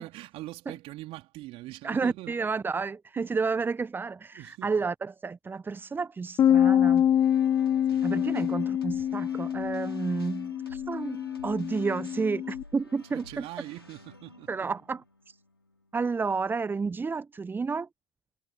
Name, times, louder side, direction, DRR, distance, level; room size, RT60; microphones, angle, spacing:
voice 1, 0.0-2.3 3.2-3.4 4.3-4.7 7.9-8.1 13.1-14.5, right 18 dB, 50° right, 3.4 m, -42 dB
voice 2, 1.8-7.1 8.0-13.4 14.5-15.4 15.9-17.9, right 4 dB, 15° right, 0.6 m, -31 dB
Bass guitar, 6.4-12.6, left 10 dB, 30° left, 0.4 m, -26 dB
sound 1, 7.0-16.1, left 2 dB, 90° left, 4.1 m, -52 dB
figure-of-eight pair, 65°, 12 cm